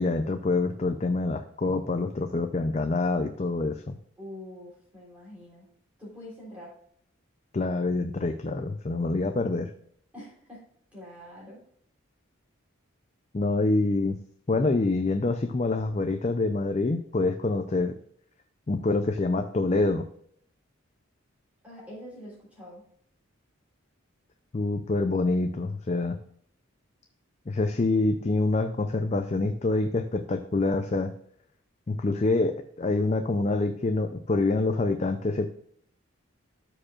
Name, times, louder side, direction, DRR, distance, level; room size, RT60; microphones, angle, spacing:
voice 1, 0.0-4.0 7.5-9.7 13.3-14.2 14.5-18.0 18.7-20.1 24.5-26.2 27.5-31.1 31.9-35.5, left 2 dB, 30° left, 7 dB, 0.4 m, -26 dB
voice 2, 4.2-5.7 6.0-6.7 10.1-10.6 10.9-11.6 21.6-22.8, left 1 dB, 5° right, -6 dB, 3.5 m, -44 dB
13.0 x 5.0 x 2.4 m, 0.64 s
head